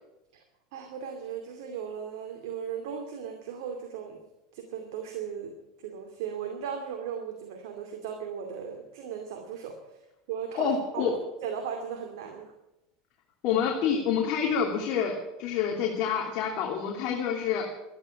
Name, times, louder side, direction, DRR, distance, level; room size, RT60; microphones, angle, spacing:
voice 1, 0.7-4.2 4.5-5.5 5.8-9.8 10.3-12.5, right 7 dB, 75° right, 4 dB, 2.4 m, -37 dB
voice 2, 10.5-11.1 13.4-17.7, left 7 dB, 55° left, 0 dB, 3.0 m, -27 dB
13.5 x 10.5 x 10.0 m, 0.93 s
hypercardioid pair, 100°, 2 cm